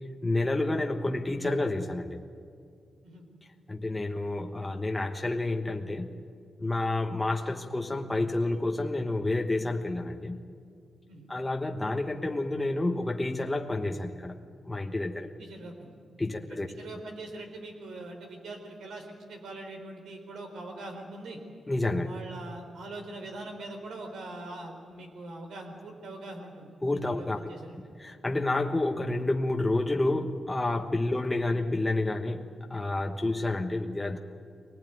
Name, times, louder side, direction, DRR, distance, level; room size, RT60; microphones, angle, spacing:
voice 1, 0.2-2.2 3.7-6.1 6.6-10.4 11.3-14.4 14.6-15.3 16.2-16.7 21.7-22.1 26.8-27.5 28.0-34.2, left 2 dB, 15° left, 3 dB, 1.2 m, -29 dB
voice 2, 15.4-15.9 16.5-21.4 22.0-26.8 27.0-27.8, right 2 dB, 85° right, 4 dB, 4.2 m, -42 dB
23.0 x 19.0 x 9.4 m, 2.3 s
cardioid pair, 105°, 0 cm